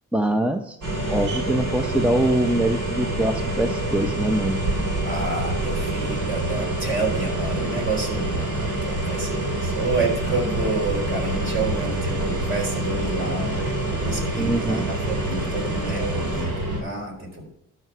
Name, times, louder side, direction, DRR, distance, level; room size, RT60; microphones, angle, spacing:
voice 1, 0.1-0.8 1.1-4.6 14.4-14.8, right 1 dB, 5° right, 8 dB, 0.7 m, -23 dB
sound 1, 0.8-16.8, right 1 dB, 80° right, 5.0 m, -26 dB
voice 2, 5.0-17.5, right 3 dB, 40° right, 1 dB, 4.2 m, -29 dB
12.5 x 5.8 x 6.0 m, 0.85 s
cardioid pair, 90°, 30 cm